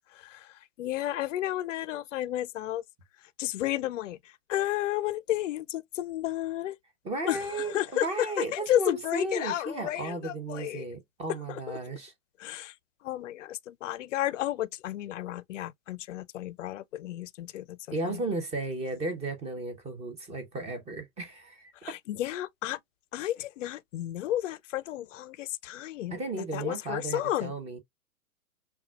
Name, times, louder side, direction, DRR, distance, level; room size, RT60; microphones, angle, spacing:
voice 1, 0.0-2.8 3.2-6.8 7.2-10.9 11.5-12.0 12.4-12.8 13.0-17.8 18.0-18.2 21.7-22.8 23.1-26.2 26.5-27.5, left 13 dB, 55° left, 0.5 m, -32 dB
voice 2, 7.0-12.1 17.9-21.7 26.1-27.8, right 2 dB, 15° right, 0.8 m, -34 dB
5.6 x 2.3 x 2.3 m
hypercardioid pair, 120°, 44 cm